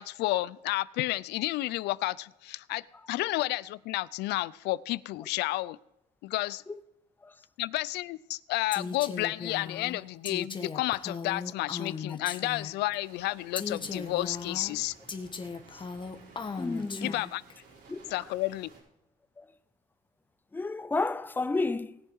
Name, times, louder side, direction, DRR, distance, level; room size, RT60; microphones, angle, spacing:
voice 1, 0.0-5.8 6.2-6.6 7.6-14.9 17.0-17.4 18.1-18.7, left 18 dB, 80° left, 0.4 m, -31 dB
Female speech woman speaking, 8.7-13.0 13.6-17.5, left 5 dB, 30° left, 1.3 m, -38 dB
sound 1, 13.0-18.8, right 3 dB, 75° right, 4.5 m, -55 dB
voice 2, 16.6-17.2 17.9-18.3 19.4-19.5 20.5-22.0, left 3 dB, 10° left, 0.5 m, -32 dB
19.0 x 7.1 x 4.6 m
cardioid pair, 110°, 17 cm